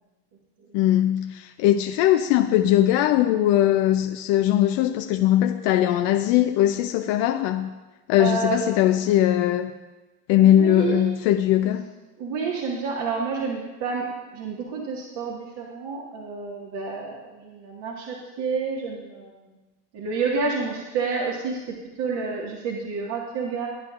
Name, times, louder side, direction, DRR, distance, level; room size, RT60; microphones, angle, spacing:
voice 1, 0.7-7.7 8.1-9.7 10.3-11.9, left 12 dB, 60° left, 6 dB, 0.7 m, -20 dB
voice 2, 8.2-8.8 10.4-11.1 12.2-14.1 14.3-19.4 19.9-21.6 22.0-23.7, right 4 dB, 55° right, -2 dB, 1.9 m, -29 dB
15.5 x 10.0 x 2.5 m, 1.1 s
hypercardioid pair, 70°, 49 cm